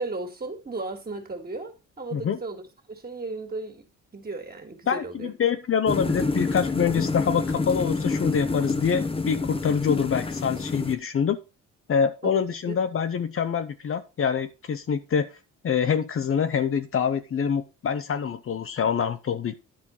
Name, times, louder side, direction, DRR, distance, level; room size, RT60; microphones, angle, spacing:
voice 1, 0.0-2.6 2.9-3.8 4.1-5.3 12.2-12.8, right 3 dB, 30° right, 4 dB, 2.4 m, -35 dB
voice 2, 4.9-11.4 11.9-15.3 15.6-19.6, left 7 dB, 45° left, 10 dB, 0.9 m, -25 dB
sound 1, 5.9-10.9, left 3 dB, 20° left, 1.0 m, -28 dB
10.5 x 4.5 x 5.4 m, 0.30 s
cardioid pair, 90°, 30 cm